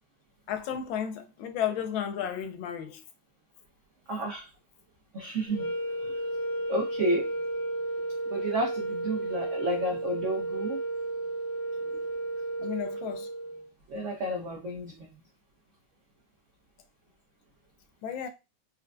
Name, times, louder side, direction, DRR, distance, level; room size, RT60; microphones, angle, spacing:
voice 1, 0.5-3.0 12.6-13.3 18.0-18.3, left 9 dB, 80° left, 1.4 m, -33 dB
voice 2, 4.1-4.5 5.1-5.7 6.0-6.1 6.7-7.3 8.3-10.8 13.9-15.1, right 1 dB, 75° right, 0.7 m, -31 dB
sound 1, 5.5-13.7, right 2 dB, 15° left, 0.9 m, -33 dB
4.3 x 2.5 x 2.3 m
omnidirectional pair, 2.2 m